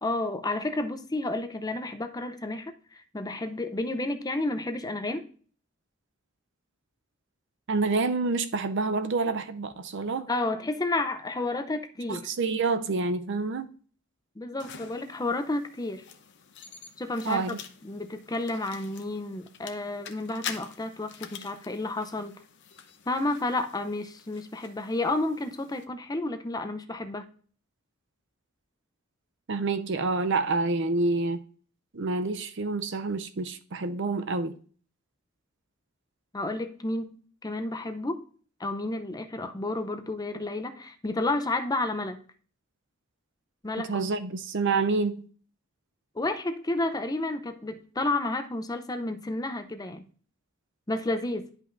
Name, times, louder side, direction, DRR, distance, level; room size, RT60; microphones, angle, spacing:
voice 1, 0.0-5.3 10.3-12.3 14.4-16.0 17.0-17.6 17.8-22.3 23.1-27.3 36.3-38.2 38.6-42.2 43.6-44.0 46.1-50.0 50.9-51.5, left 2 dB, 20° left, 0.6 m, -31 dB
voice 2, 7.7-10.3 12.1-13.7 17.2-17.6 29.5-31.4 31.9-34.6 43.9-45.3, right 3 dB, 60° right, 0.6 m, -28 dB
sound 1, 14.6-25.8, left 7 dB, 60° left, 0.8 m, -46 dB
11.0 x 5.3 x 2.6 m
head